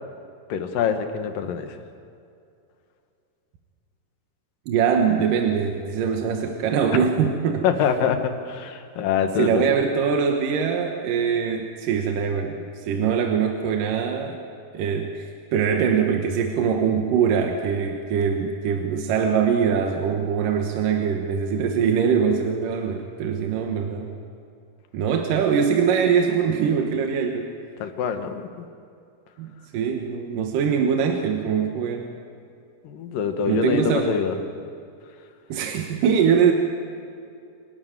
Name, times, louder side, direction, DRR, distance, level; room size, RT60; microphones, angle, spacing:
voice 1, 0.5-1.8 7.6-9.6 27.8-28.7 32.8-34.4, left 7 dB, 75° left, 7 dB, 3.1 m, -25 dB
voice 2, 4.7-7.6 9.4-12.6 12.9-14.4 14.7-24.1 24.9-27.5 29.4-32.2 33.5-34.1 35.5-36.5, right 7 dB, 75° right, 3 dB, 2.9 m, -22 dB
26.5 x 13.0 x 9.4 m, 2.5 s
omnidirectional pair, 4.0 m